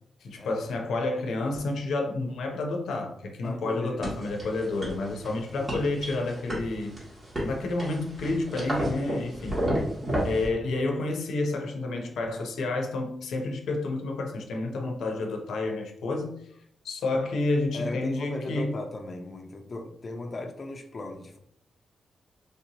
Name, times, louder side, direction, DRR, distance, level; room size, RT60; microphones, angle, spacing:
voice 1, 0.2-7.0 7.4-9.8 10.2-16.5 16.8-18.8, left 2 dB, 90° left, 0.5 m, -30 dB
voice 2, 3.4-4.0 5.5-5.7 17.7-21.4, left 2 dB, 35° left, 0.4 m, -37 dB
sound 1, 4.0-10.5, equal, 30° right, 1.5 m, -32 dB
3.3 x 2.8 x 2.7 m
cardioid pair, 95°, 0 cm